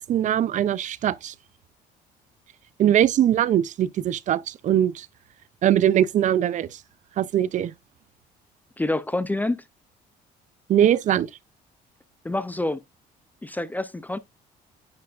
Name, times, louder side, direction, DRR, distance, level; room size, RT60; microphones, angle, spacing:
voice 1, 0.0-1.3 2.8-5.1 5.6-6.8 7.2-7.7 10.7-11.3, right 11 dB, 50° right, 0.4 m, -21 dB
voice 2, 8.8-9.6 12.2-12.8 13.4-14.2, left 2 dB, 10° left, 0.4 m, -27 dB
9.4 x 4.5 x 2.4 m
cardioid pair, 110°, 17 cm